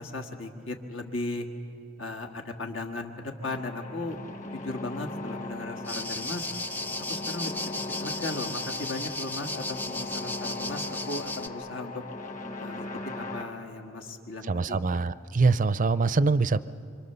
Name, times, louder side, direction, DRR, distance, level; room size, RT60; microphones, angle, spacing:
voice 1, 0.0-1.5 2.0-4.2 4.5-6.5 7.1-12.0 12.6-14.8, left 2 dB, 75° left, 4 dB, 1.7 m, -36 dB
sound 1, 3.4-13.4, left 2 dB, 40° left, 1.7 m, -38 dB
sound 2, 5.8-11.5, left 2 dB, 10° left, 0.6 m, -35 dB
voice 2, 14.5-16.6, right 4 dB, 40° right, 17 dB, 0.5 m, -24 dB
25.5 x 25.0 x 6.8 m, 2.6 s
head